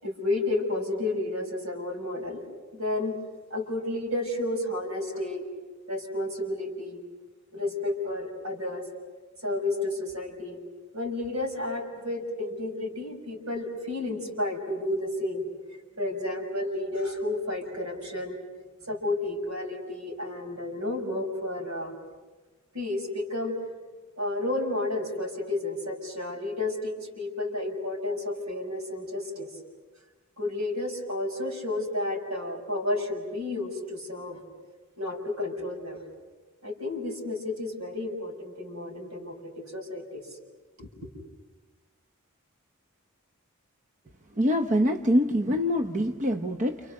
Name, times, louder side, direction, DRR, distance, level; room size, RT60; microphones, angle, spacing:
voice 1, 0.0-2.4 2.7-3.1 3.5-5.4 5.9-7.0 7.5-8.9 9.4-10.6 10.9-15.4 16.0-18.4 18.9-21.9 22.7-23.5 24.2-29.5 30.4-34.4 35.0-36.0 36.6-40.2 40.8-40.9, left 2 dB, 80° right, 2 dB, 6.5 m, -31 dB
voice 2, 44.4-46.8, equal, 35° right, 6 dB, 0.9 m, -24 dB
30.0 x 29.5 x 6.6 m, 1.3 s
head